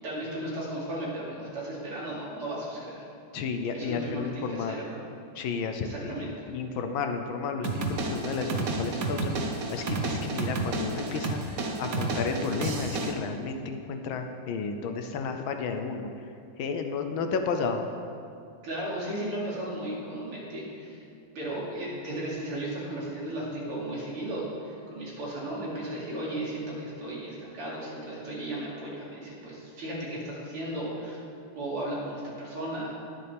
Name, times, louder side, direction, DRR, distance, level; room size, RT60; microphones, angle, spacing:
voice 1, 0.0-3.0 3.7-5.0 5.8-6.5 18.6-21.0 21.4-31.2 31.6-32.9, right 1 dB, 80° right, -6 dB, 3.6 m, -35 dB
voice 2, 3.3-4.7 5.3-16.1 16.6-17.9, left 5 dB, 70° left, 6 dB, 1.4 m, -32 dB
sound 1, 7.6-13.1, right 3 dB, 55° right, 1.0 m, -31 dB
20.0 x 6.9 x 3.4 m, 2.5 s
omnidirectional pair, 2.4 m